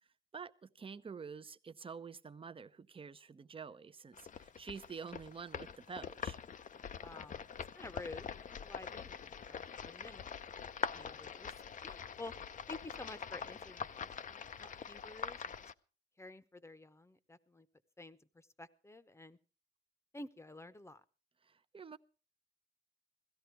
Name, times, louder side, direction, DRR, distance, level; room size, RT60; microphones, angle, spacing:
voice 1, 0.3-6.4 21.4-22.0, right 5 dB, 25° right, 0.7 m, -48 dB
sound 1, 4.1-15.7, left 7 dB, 40° left, 0.6 m, -44 dB
voice 2, 7.0-10.2 10.9-12.3 12.7-15.7 16.2-17.7 18.0-19.4 20.1-21.0, left 2 dB, 15° left, 0.9 m, -51 dB
16.5 x 14.0 x 4.6 m
cardioid pair, 90°, 20 cm